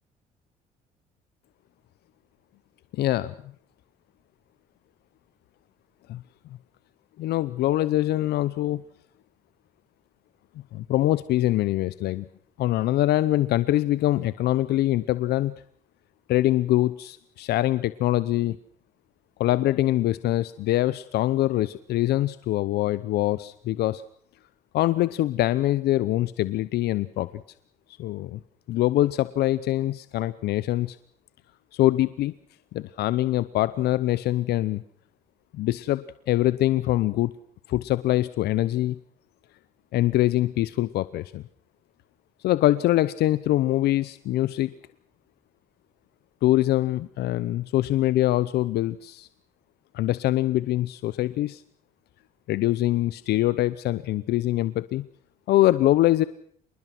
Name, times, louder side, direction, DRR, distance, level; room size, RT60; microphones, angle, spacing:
voice 1, 2.9-3.3 6.1-6.2 7.2-8.8 10.7-12.3 12.6-15.5 16.3-18.6 19.4-24.0 24.7-27.4 28.0-28.4 28.7-31.0 31.7-32.3 32.7-34.8 35.5-37.3 37.7-39.0 39.9-41.4 42.4-44.7 46.4-49.3 49.9-51.6 52.5-55.0 55.5-56.2, left 15 dB, 75° left, 16 dB, 0.9 m, -24 dB
27.0 x 20.5 x 6.1 m, 0.63 s
cardioid pair, 110°, 17 cm